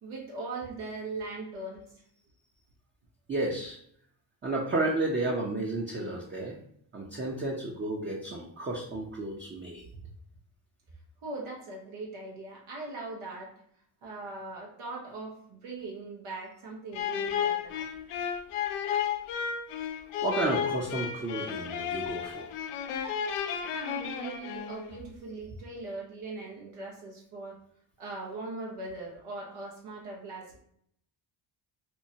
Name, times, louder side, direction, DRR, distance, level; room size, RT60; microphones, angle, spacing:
voice 1, 0.0-1.8 11.2-13.5 14.0-17.9 23.5-27.6 28.0-30.6, right 3 dB, 80° right, -2 dB, 1.0 m, -40 dB
voice 2, 3.3-3.8 4.4-6.6 6.9-9.9 20.2-22.5, right 2 dB, 25° right, -2 dB, 0.6 m, -32 dB
sound 1, 16.9-25.0, left 8 dB, 85° left, 0.6 m, -33 dB
4.4 x 2.1 x 2.7 m, 0.67 s
cardioid pair, 70°, 49 cm